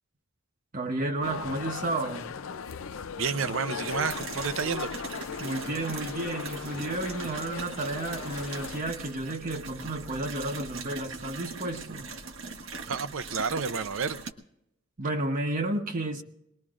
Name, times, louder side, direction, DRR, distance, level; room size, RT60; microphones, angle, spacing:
voice 1, 0.7-2.3 5.4-12.1 15.0-16.2, right 2 dB, 45° right, 0.9 m, -32 dB
sound 1, 1.2-8.8, left 6 dB, 80° left, 0.5 m, -38 dB
voice 2, 3.2-4.9 12.9-14.2, right 5 dB, 70° right, 0.6 m, -30 dB
sound 2, 3.8-14.3, right 4 dB, 90° right, 1.3 m, -40 dB
22.5 x 20.0 x 2.5 m
head